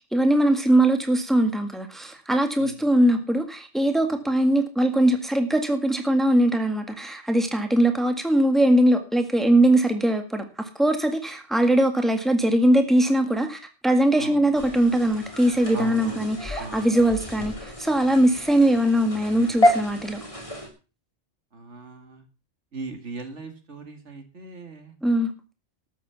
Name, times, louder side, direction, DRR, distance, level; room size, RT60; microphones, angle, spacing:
voice 1, 0.1-20.3 25.0-25.3, right 1 dB, ahead, 6 dB, 1.8 m, -21 dB
voice 2, 14.2-14.6 15.7-16.3 16.6-16.8 21.5-22.2 22.7-24.9, right 3 dB, 80° right, 6 dB, 2.5 m, -38 dB
sound 1, 14.5-20.7, left 1 dB, 30° left, 3.0 m, -29 dB
12.5 x 7.4 x 7.1 m, 0.33 s
omnidirectional pair, 1.2 m